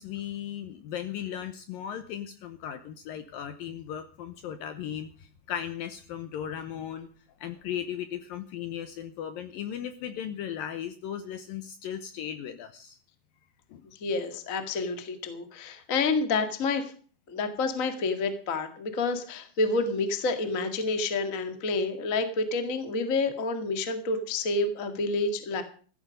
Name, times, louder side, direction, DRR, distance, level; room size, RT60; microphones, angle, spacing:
voice 1, 0.0-7.1 7.4-13.0 13.7-13.8, left 9 dB, 75° left, 9 dB, 2.2 m, -37 dB
voice 2, 14.0-16.9 17.3-25.6, left 3 dB, 50° left, 7 dB, 0.9 m, -29 dB
15.0 x 14.0 x 5.2 m, 0.42 s
omnidirectional pair, 5.1 m